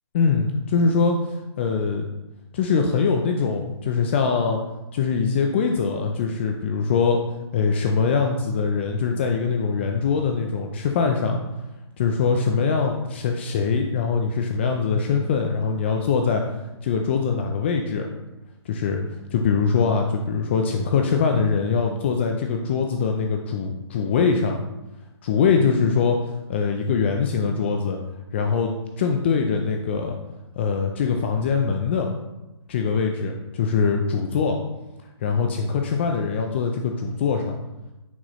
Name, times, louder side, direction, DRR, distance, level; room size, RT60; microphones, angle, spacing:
voice 1, 0.1-2.0 2.5-4.6 4.9-7.2 7.5-11.4 12.0-16.4 16.8-18.1 18.7-19.0 19.3-24.6 25.2-28.0 28.3-30.1 30.6-32.1 32.7-34.6 35.2-37.6, left 5 dB, 25° left, 3 dB, 0.5 m, -23 dB
9.2 x 5.9 x 3.1 m, 1.0 s
hypercardioid pair, 165°, 15 cm